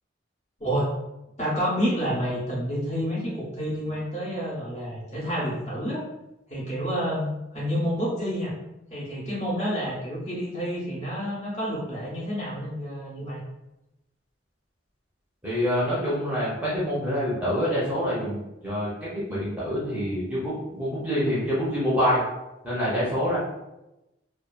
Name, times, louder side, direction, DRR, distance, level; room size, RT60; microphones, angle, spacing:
voice 1, 0.6-0.9 1.4-6.0 6.5-8.5 8.9-13.4, equal, 35° left, -7 dB, 0.9 m, -29 dB
voice 2, 15.4-22.2 22.6-23.4, equal, 10° right, -9 dB, 0.7 m, -26 dB
2.6 x 2.4 x 2.3 m, 0.94 s
head